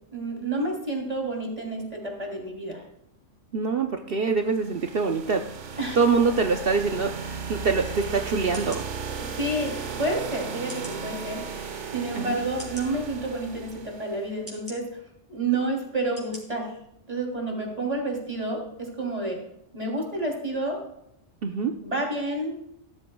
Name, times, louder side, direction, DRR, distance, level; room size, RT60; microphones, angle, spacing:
voice 1, 0.1-2.8 5.8-6.0 9.1-14.9 15.3-16.7 17.1-19.4 19.7-20.8 21.8-22.6, right 2 dB, 30° right, 0 dB, 3.3 m, -30 dB
voice 2, 3.5-5.4 5.9-8.9 12.1-12.4 21.4-21.7, right 4 dB, 55° right, 5 dB, 0.9 m, -25 dB
sound 1, 4.4-14.3, right 5 dB, 70° right, 1.4 m, -36 dB
sound 2, 7.8-8.0 8.5-8.8 9.6-9.7 10.7-11.0 11.7-11.8 12.6-12.9 13.7-13.8 14.5-14.8 15.5-15.6 16.2-16.4 16.8-16.9, right 1 dB, 10° right, 4.2 m, -42 dB
16.5 x 13.0 x 2.3 m, 0.77 s
omnidirectional pair, 1.3 m